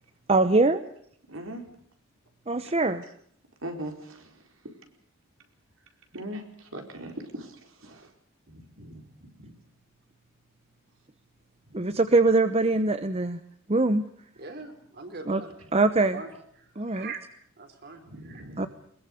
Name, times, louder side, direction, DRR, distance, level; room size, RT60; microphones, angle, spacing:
voice 1, 0.3-0.8 2.5-3.0 11.7-13.4 13.7-14.0 15.3-15.4 15.7-16.2 16.8-17.1 18.6-18.7, right 3 dB, 30° right, 0.9 m, -22 dB
voice 2, 1.3-1.6 2.6-2.8 3.6-4.8 6.1-8.1 8.5-9.5 11.6-12.0 18.0-18.7, right 1 dB, 70° right, 4.6 m, -41 dB
voice 3, 14.4-15.5 16.1-16.3 16.6-18.7, right 4 dB, 50° right, 4.5 m, -42 dB
22.0 x 21.5 x 6.6 m
head